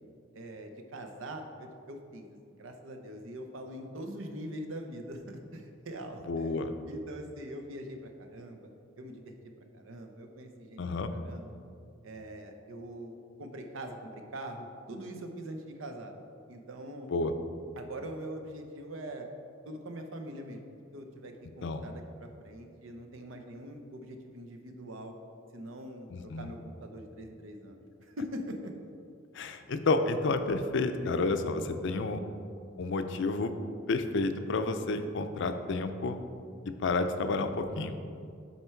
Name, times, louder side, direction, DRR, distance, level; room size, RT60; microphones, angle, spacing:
voice 1, 0.3-6.5 6.9-8.7 9.0-9.3 9.7-10.8 11.1-11.6 12.0-16.1 16.5-17.1 17.8-19.3 19.6-25.1 25.5-28.7, right 1 dB, 80° right, 4 dB, 0.8 m, -43 dB
voice 2, 6.3-6.7 10.8-11.1 17.1-17.3 21.6-21.8 26.1-26.5 29.3-32.2 32.8-33.5 33.9-36.2 36.7-38.0, left 3 dB, 65° left, 9 dB, 0.5 m, -30 dB
8.1 x 4.4 x 4.5 m, 2.4 s
head